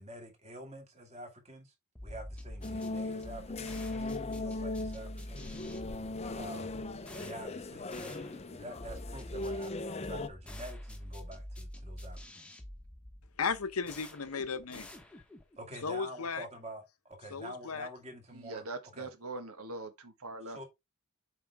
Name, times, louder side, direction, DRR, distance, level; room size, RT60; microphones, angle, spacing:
voice 1, 0.0-1.7 2.0-5.5 6.3-6.8 7.2-12.6 15.6-18.6 18.9-19.1 20.5-20.6, right 1 dB, 30° right, 2.2 m, -47 dB
sound 1, 2.0-15.6, left 1 dB, 5° left, 1.0 m, -46 dB
sound 2, 2.6-10.3, left 2 dB, 30° left, 0.6 m, -39 dB
voice 2, 13.4-14.9 15.8-16.5 17.3-17.9, left 5 dB, 80° left, 0.9 m, -35 dB
voice 3, 18.3-20.6, right 2 dB, 80° right, 1.5 m, -42 dB
7.4 x 4.8 x 3.5 m
head